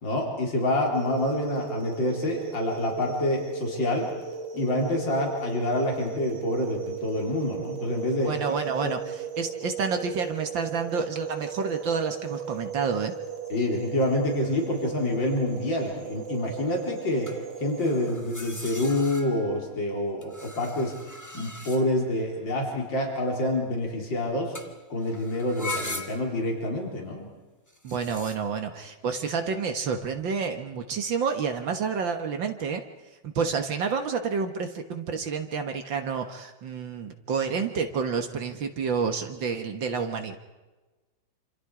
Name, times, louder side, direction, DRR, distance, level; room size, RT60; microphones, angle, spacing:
voice 1, 0.0-4.1 4.5-8.3 8.8-8.9 13.5-17.3 17.6-20.9 21.3-24.5 24.9-27.3, left 1 dB, 60° left, 0 dB, 4.7 m, -27 dB
sound 1, 0.9-18.1, right 7 dB, 45° right, 1.6 m, -37 dB
voice 2, 8.2-9.0 9.4-13.1 27.8-32.8 33.2-40.4, right 5 dB, 65° right, 6 dB, 2.1 m, -29 dB
sound 2, 14.4-14.6 17.3-19.7 20.2-22.2 24.5-24.8 25.0-26.4 27.7-28.4, left 2 dB, 10° left, 1.6 m, -40 dB
27.0 x 27.0 x 4.9 m, 1.2 s
omnidirectional pair, 2.2 m